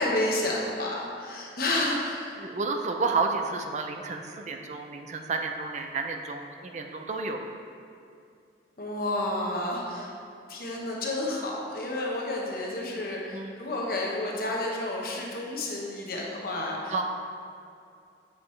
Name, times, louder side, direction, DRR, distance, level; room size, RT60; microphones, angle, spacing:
voice 1, 0.0-2.4 8.8-10.1 10.5-17.0, left 1 dB, 55° left, -2 dB, 1.1 m, -30 dB
voice 2, 2.4-7.4 13.3-13.5 16.9-17.0, right 4 dB, 40° right, 4 dB, 0.4 m, -31 dB
7.3 x 5.9 x 3.2 m, 2.5 s
head